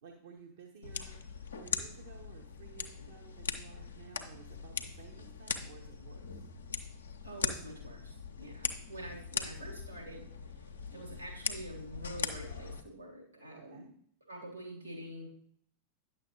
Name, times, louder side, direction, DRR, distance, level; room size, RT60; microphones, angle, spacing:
voice 1, 0.0-1.2 1.5-6.5 9.1-9.2 13.6-13.9, right 6 dB, 60° right, 2 dB, 0.8 m, -54 dB
sound 1, 0.8-12.8, left 5 dB, 70° left, 0.6 m, -40 dB
voice 2, 7.2-10.3 10.9-13.9 14.3-15.3, right 1 dB, 90° right, -3 dB, 2.6 m, -46 dB
9.5 x 6.5 x 2.9 m, 0.64 s
figure-of-eight pair, 90°, 0 cm